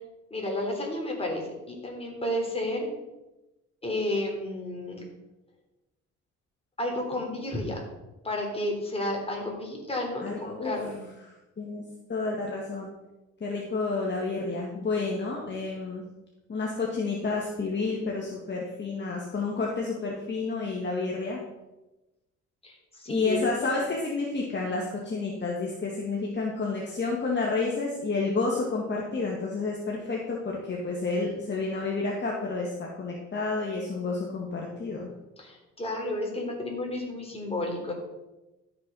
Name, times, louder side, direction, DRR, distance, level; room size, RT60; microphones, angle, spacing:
voice 1, 0.3-2.9 3.8-5.0 6.8-7.8 8.2-11.0 22.6-23.4 35.4-37.9, left 1 dB, 20° left, 0 dB, 3.8 m, -32 dB
voice 2, 10.2-10.7 11.6-11.8 12.1-12.9 13.4-16.0 16.5-21.4 23.1-35.1, left 3 dB, 35° left, -2 dB, 2.1 m, -30 dB
12.5 x 6.9 x 5.5 m, 1.0 s
cardioid pair, 90°, 30 cm